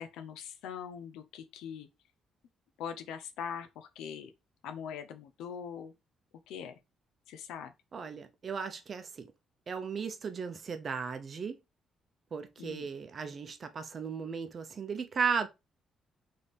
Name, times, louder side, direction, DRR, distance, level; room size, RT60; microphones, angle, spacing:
voice 1, 0.0-1.9 2.8-4.3 4.6-5.9 6.5-6.8 7.3-7.7 12.6-12.9, left 7 dB, 90° left, 0.6 m, -42 dB
voice 2, 7.9-9.3 9.7-11.6 12.3-15.5, right 5 dB, 45° right, 0.7 m, -36 dB
3.4 x 3.3 x 4.1 m
cardioid pair, 90°, 0 cm